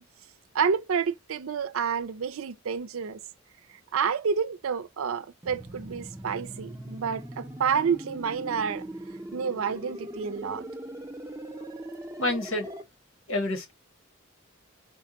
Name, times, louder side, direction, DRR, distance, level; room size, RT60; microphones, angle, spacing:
voice 1, 0.5-3.2 3.9-8.8 9.3-10.7, right 6 dB, 90° right, 0.5 m, -29 dB
sound 1, 5.4-12.8, right 1 dB, 15° right, 0.6 m, -40 dB
voice 2, 12.2-12.7 13.3-13.7, left 2 dB, 80° left, 1.2 m, -28 dB
4.5 x 2.2 x 2.7 m
head